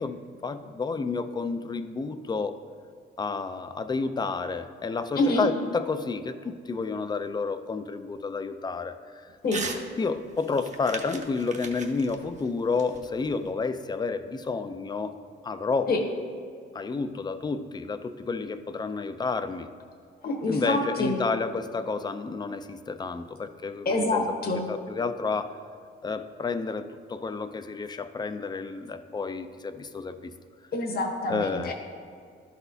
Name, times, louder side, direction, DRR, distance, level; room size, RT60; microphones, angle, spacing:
voice 1, 0.0-2.6 3.2-9.2 10.0-15.2 15.4-15.9 16.7-19.7 20.5-24.2 24.7-25.6 26.0-30.3 31.3-31.7, left 4 dB, 20° left, 10 dB, 0.4 m, -30 dB
voice 2, 5.1-5.5 9.4-9.6 15.9-16.0 20.2-21.2 23.8-24.7 30.7-31.7, left 2 dB, 50° left, 1 dB, 1.2 m, -26 dB
Crumpling crinkling / Tearing, 9.5-9.8 10.2-13.5, right 4 dB, 35° right, 0.8 m, -38 dB
12.0 x 4.1 x 2.7 m, 2.2 s
cardioid pair, 90°, 20 cm